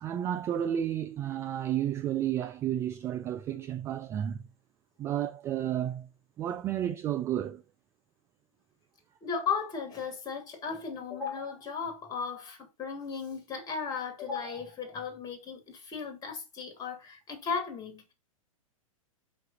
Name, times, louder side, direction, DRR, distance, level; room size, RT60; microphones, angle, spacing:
voice 1, 0.0-4.4 5.0-6.1 6.4-7.6, right 11 dB, 15° right, 0.3 m, -31 dB
voice 2, 9.2-18.1, left 5 dB, 20° left, 2.3 m, -36 dB
5.8 x 5.2 x 4.2 m
figure-of-eight pair, 105°, 18 cm